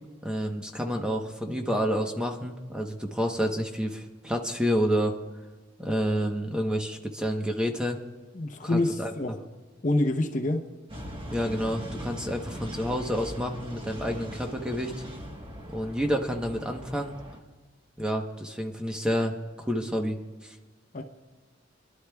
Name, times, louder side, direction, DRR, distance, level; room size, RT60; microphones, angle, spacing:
voice 1, 0.2-5.1 5.8-8.0 8.6-9.4 11.3-14.9 15.7-17.2 18.0-20.5, equal, 5° right, 3 dB, 1.0 m, -29 dB
voice 2, 8.3-9.4 9.8-10.7 20.9-21.0, left 1 dB, 40° left, 4 dB, 0.8 m, -26 dB
sound 1, 10.9-17.4, equal, 30° right, 1.3 m, -40 dB
27.0 x 11.5 x 2.3 m, 1.3 s
head